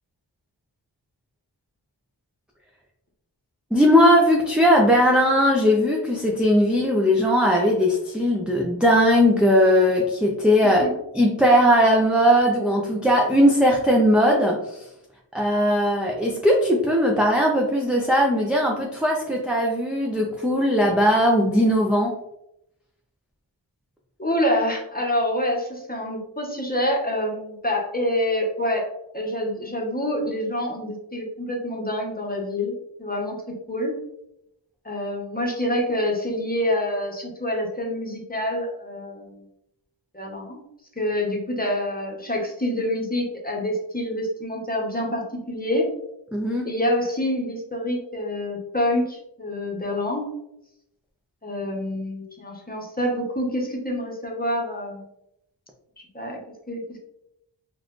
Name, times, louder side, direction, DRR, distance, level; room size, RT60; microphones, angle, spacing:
voice 1, 3.7-10.8 11.1-14.8 15.3-22.1 46.3-46.7, equal, ahead, -2 dB, 0.5 m, -19 dB
voice 2, 24.2-33.4 33.7-33.9 34.8-39.4 40.1-40.6 41.0-45.9 46.6-50.3 51.4-55.0 56.1-56.4 56.7-57.0, left 1 dB, 20° left, -1 dB, 1.0 m, -27 dB
3.9 x 2.5 x 3.1 m, 0.81 s
wide cardioid pair, 50°, 46 cm